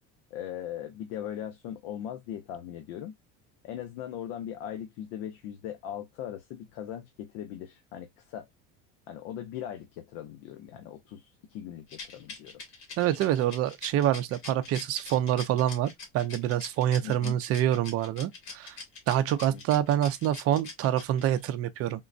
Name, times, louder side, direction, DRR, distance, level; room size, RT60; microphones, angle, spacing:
voice 1, 0.3-3.1 3.6-8.5 9.1-12.6 17.0-17.4 19.5-19.6, left 10 dB, 80° left, 0.7 m, -39 dB
Rattle, 11.9-21.4, left 4 dB, 50° left, 1.4 m, -43 dB
voice 2, 13.0-18.8 19.1-22.0, right 11 dB, 40° right, 0.5 m, -26 dB
3.7 x 2.1 x 2.4 m
cardioid pair, 145°, 37 cm